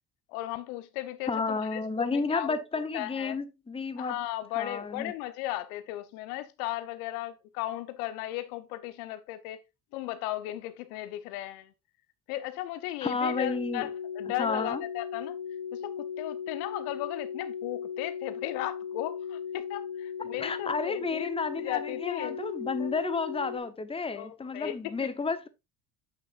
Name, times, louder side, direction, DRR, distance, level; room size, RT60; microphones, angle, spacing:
voice 1, 0.3-2.6 2.9-3.4 4.0-9.6 9.9-11.7 12.3-13.9 14.1-15.4 15.7-21.3 21.6-22.4 22.8-22.9 24.2-25.1, left 15 dB, 70° left, 0.9 m, -36 dB
voice 2, 1.3-4.2 4.6-5.1 13.0-13.9 14.4-14.8 20.4-25.5, left 4 dB, 10° left, 0.9 m, -31 dB
sound 1, 13.2-23.6, left 7 dB, 55° left, 1.6 m, -37 dB
8.2 x 6.2 x 2.5 m
hypercardioid pair, 60°, 46 cm